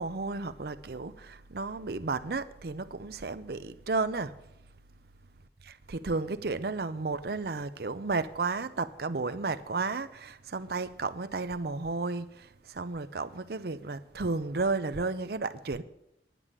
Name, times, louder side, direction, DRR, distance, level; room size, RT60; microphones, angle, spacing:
voice 1, 0.0-4.3 5.6-15.8, right 3 dB, 60° right, 0.6 m, -33 dB
10.5 x 8.2 x 7.3 m
head